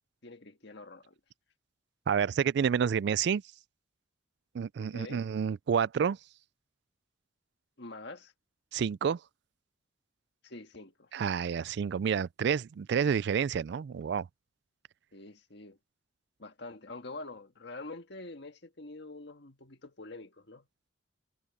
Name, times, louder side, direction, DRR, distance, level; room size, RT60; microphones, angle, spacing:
voice 1, 0.2-1.2 4.8-5.2 7.8-8.3 10.4-11.1 15.1-15.8 16.4-20.7, left 2 dB, 60° left, 1.7 m, -46 dB
voice 2, 2.1-3.4 4.5-6.2 8.7-9.2 11.1-14.3, right 7 dB, 60° right, 0.3 m, -29 dB
head